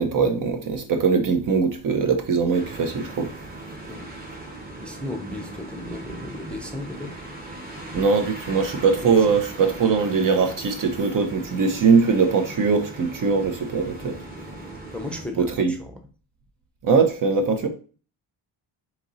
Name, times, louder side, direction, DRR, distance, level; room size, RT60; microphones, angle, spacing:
voice 1, 0.0-3.3 7.9-14.2 15.4-15.7 16.8-17.7, right 5 dB, 50° right, 0.8 m, -21 dB
sound 1, 2.5-15.2, right 1 dB, 20° right, 1.2 m, -39 dB
voice 2, 3.9-7.6 7.9-8.0 8.9-9.4 14.9-16.0, left 1 dB, 5° left, 0.6 m, -36 dB
4.2 x 2.9 x 4.1 m
cardioid pair, 115°, 42 cm